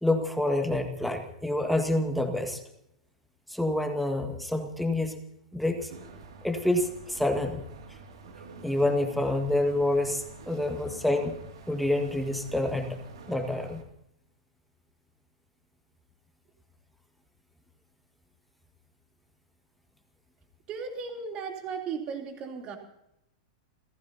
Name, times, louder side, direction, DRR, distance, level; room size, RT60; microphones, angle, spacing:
voice 1, 0.0-2.6 3.5-5.2 5.5-5.9 6.4-7.6 8.6-11.4 11.7-13.0 13.3-13.8, left 1 dB, ahead, 5 dB, 1.8 m, -27 dB
sound 1, 5.9-13.8, right 4 dB, 60° right, 2.5 m, -48 dB
voice 2, 20.7-22.8, right 5 dB, 30° right, 3 dB, 3.3 m, -36 dB
30.0 x 15.5 x 2.9 m, 0.77 s
figure-of-eight pair, 95°, 3 cm